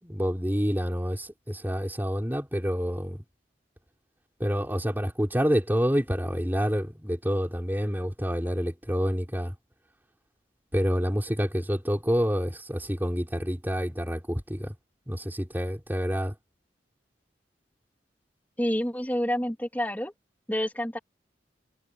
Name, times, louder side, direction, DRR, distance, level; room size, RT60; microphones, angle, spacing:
voice 1, 0.0-3.2 4.4-9.5 10.7-14.7 15.1-16.3, equal, 10° right, 4.3 m, -28 dB
voice 2, 18.6-20.1 20.5-21.0, equal, 10° left, 2.8 m, -28 dB
head